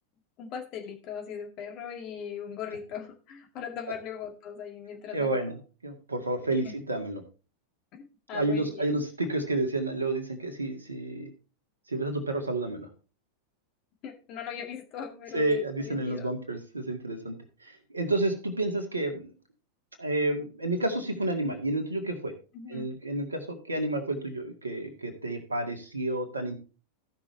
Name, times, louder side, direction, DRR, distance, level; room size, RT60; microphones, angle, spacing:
voice 1, 0.4-5.4 6.6-6.7 7.9-8.0 8.3-8.9 14.0-16.3 22.5-22.9, left 7 dB, 40° left, 3 dB, 2.1 m, -39 dB
voice 2, 5.1-7.2 8.3-11.3 11.9-12.9 15.3-19.3 20.0-22.3 22.7-26.6, right 2 dB, 80° right, 5 dB, 2.0 m, -30 dB
15.5 x 6.1 x 3.2 m, 0.34 s
figure-of-eight pair, 90°, 0 cm